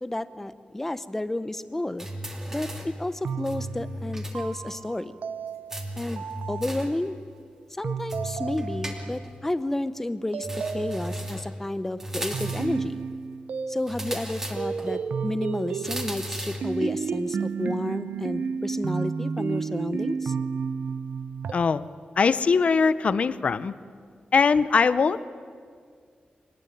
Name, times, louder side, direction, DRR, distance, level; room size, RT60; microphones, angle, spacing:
voice 1, 0.0-2.1 2.5-5.2 6.0-7.2 7.8-10.5 10.7-13.0 13.7-20.3, left 1 dB, 10° left, 13 dB, 0.7 m, -31 dB
sound 1, 2.0-3.0 3.4-4.4 4.7-4.8 5.7-7.0 8.1-9.4 10.4-11.5 12.0-12.8 13.9-14.9 15.8-16.7, equal, 15° right, 2.7 m, -35 dB
sound 2, 3.2-7.1 7.8-9.3 10.3-11.5 12.3-14.2 14.6-21.5, right 6 dB, 65° right, 0.8 m, -32 dB
voice 2, 21.5-21.9 22.2-23.7 24.3-25.3, left 5 dB, 50° left, 15 dB, 0.7 m, -21 dB
24.0 x 19.5 x 9.5 m, 2.1 s
wide cardioid pair, 180°, 3 cm